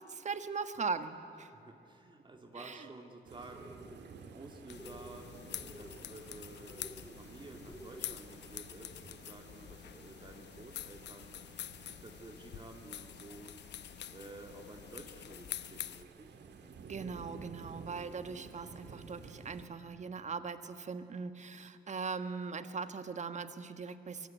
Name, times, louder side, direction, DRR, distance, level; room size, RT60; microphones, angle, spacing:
voice 1, 0.1-1.5 2.6-2.9 16.8-24.3, right 5 dB, 45° right, 10 dB, 1.6 m, -40 dB
voice 2, 1.4-5.3 5.8-6.9 7.1-11.4 11.9-13.6 14.1-16.4, right 2 dB, 30° right, 3 dB, 2.4 m, -52 dB
sound 1, 3.3-19.7, right 5 dB, 80° right, 2.4 m, -54 dB
sound 2, 3.5-4.0 4.7-5.2 5.5-6.0 6.7-7.1 7.6-8.2, equal, ahead, 1.6 m, -52 dB
sound 3, 4.7-16.0, left 11 dB, 90° left, 0.9 m, -47 dB
24.0 x 23.0 x 9.3 m, 2.9 s
cardioid pair, 120°, 17 cm